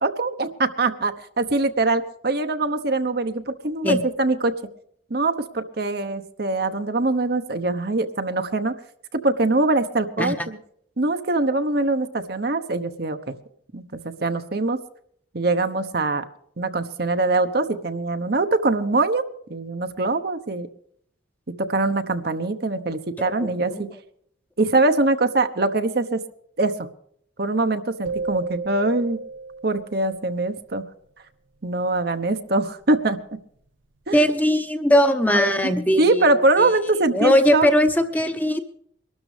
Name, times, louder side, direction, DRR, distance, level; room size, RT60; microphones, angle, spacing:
voice 1, 0.0-4.5 5.1-8.7 9.1-10.6 11.0-13.4 13.7-14.8 15.3-16.2 16.6-19.2 19.5-20.7 21.5-23.9 24.6-26.2 26.6-26.9 27.4-29.2 29.6-30.9 31.6-33.2 34.1-34.3 35.3-37.7, right 2 dB, 55° right, 8 dB, 0.9 m, -23 dB
sound 1, 28.0-30.3, right 4 dB, 85° right, 1.0 m, -32 dB
voice 2, 34.1-36.2 36.6-36.7 37.1-38.6, equal, 10° left, 7 dB, 0.9 m, -19 dB
22.5 x 12.5 x 3.3 m, 0.66 s
head